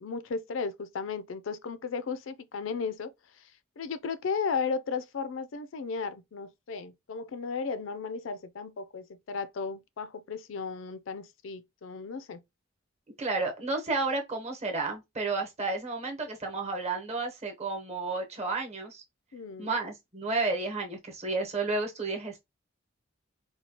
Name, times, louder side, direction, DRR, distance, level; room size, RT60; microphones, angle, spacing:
voice 1, 0.0-3.5 3.8-12.4 19.3-19.8, left 5 dB, 75° left, 0.4 m, -35 dB
voice 2, 13.2-19.0 19.6-22.4, right 3 dB, 35° right, 1.0 m, -32 dB
4.4 x 2.3 x 2.8 m
head